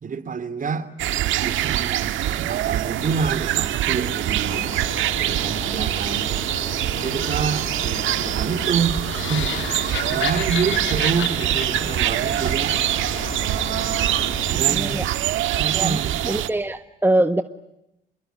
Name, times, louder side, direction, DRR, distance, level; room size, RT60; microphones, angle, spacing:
voice 1, 0.0-0.9 1.4-4.6 5.2-6.7 6.9-9.0 9.3-12.8 14.5-15.0 15.6-16.1, right 5 dB, 40° right, 2.9 m, -28 dB
sound 1, 1.0-16.5, right 13 dB, 75° right, 1.6 m, -24 dB
sound 2, 4.4-14.6, left 6 dB, 35° left, 1.2 m, -36 dB
sound 3, 9.0-13.2, left 10 dB, 70° left, 2.8 m, -32 dB
voice 2, 14.7-15.1 15.7-16.0 16.2-17.4, right 1 dB, 10° right, 1.4 m, -22 dB
28.0 x 21.5 x 9.4 m
supercardioid pair, 80°, 20 cm